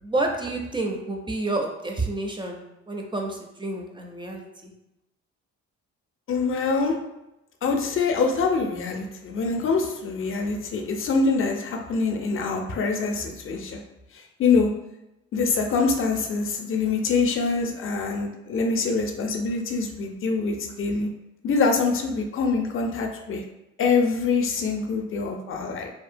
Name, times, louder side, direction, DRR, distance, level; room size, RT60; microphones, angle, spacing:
voice 1, 0.0-4.7, right 2 dB, 15° right, 1 dB, 0.4 m, -29 dB
voice 2, 6.3-7.0 7.6-13.8 14.4-14.7 15.3-21.1 21.4-23.4 23.8-25.9, left 4 dB, 45° left, 3 dB, 0.5 m, -24 dB
2.7 x 2.1 x 2.5 m, 0.91 s
cardioid pair, 90°, 30 cm